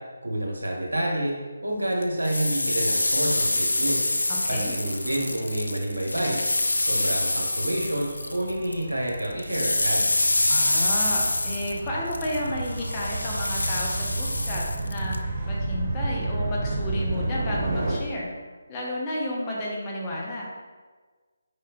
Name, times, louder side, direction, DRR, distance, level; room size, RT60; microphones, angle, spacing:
voice 1, 0.2-1.3 1.6-4.0 4.5-6.4 6.8-10.1, right 1 dB, 75° right, -2 dB, 1.1 m, -28 dB
sound 1, 2.0-8.8 9.1-15.2, left 2 dB, 70° left, 0.3 m, -26 dB
Gull seagull / Waves surf / Siren, 3.3-18.0, right 2 dB, 30° right, 0.8 m, -33 dB
voice 2, 4.3-4.7 10.5-18.3 18.7-20.5, left 1 dB, 20° left, -4 dB, 0.7 m, -32 dB
4.6 x 3.5 x 2.9 m, 1.4 s
figure-of-eight pair, 150°, 0 cm